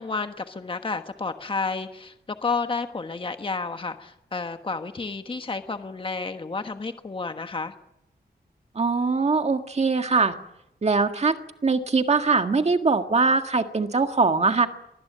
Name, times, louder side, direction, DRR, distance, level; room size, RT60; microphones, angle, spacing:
voice 1, 0.0-7.7, left 4 dB, 30° left, 7 dB, 1.3 m, -31 dB
voice 2, 8.8-10.3 10.8-11.4 11.6-14.7, right 4 dB, 40° right, 6 dB, 1.7 m, -22 dB
24.0 x 19.0 x 9.3 m, 0.85 s
wide cardioid pair, 140°, 17 cm